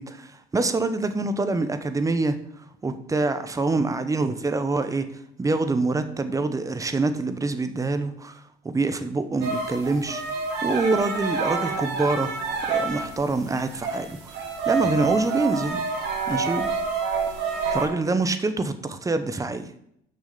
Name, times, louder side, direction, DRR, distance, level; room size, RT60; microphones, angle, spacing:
voice 1, 0.0-2.4 2.8-5.1 5.4-10.2 10.6-12.3 12.7-14.3 14.7-15.8 16.3-16.7 17.7-19.7, right 3 dB, 20° right, 10 dB, 0.9 m, -25 dB
sound 1, 9.4-13.2 13.5-17.9, right 4 dB, 85° right, 2.6 m, -27 dB
6.5 x 6.3 x 6.7 m, 0.73 s
cardioid pair, 110°, 17 cm